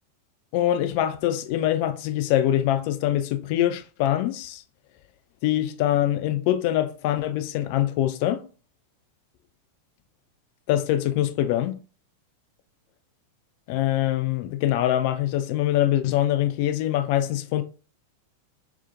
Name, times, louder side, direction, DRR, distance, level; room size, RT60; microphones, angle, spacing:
voice 1, 0.5-4.6 5.4-8.4 10.7-11.8 13.7-17.6, left 12 dB, 45° left, 0.3 m, -24 dB
2.8 x 2.1 x 2.5 m
figure-of-eight pair, 90°, 0 cm